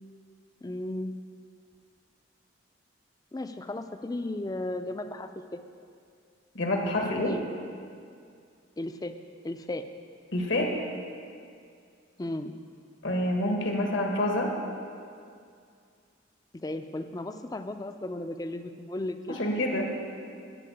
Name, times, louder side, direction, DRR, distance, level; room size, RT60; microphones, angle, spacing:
voice 1, 0.6-1.1 3.3-5.6 7.0-7.4 8.8-9.1 9.4-9.9 12.2-12.6 16.6-19.4, left 1 dB, 20° left, 8 dB, 0.4 m, -35 dB
voice 2, 6.6-7.3 10.3-10.7 13.0-14.5 19.3-20.0, left 1 dB, 80° left, 1 dB, 1.6 m, -27 dB
12.5 x 4.6 x 8.4 m, 2.3 s
head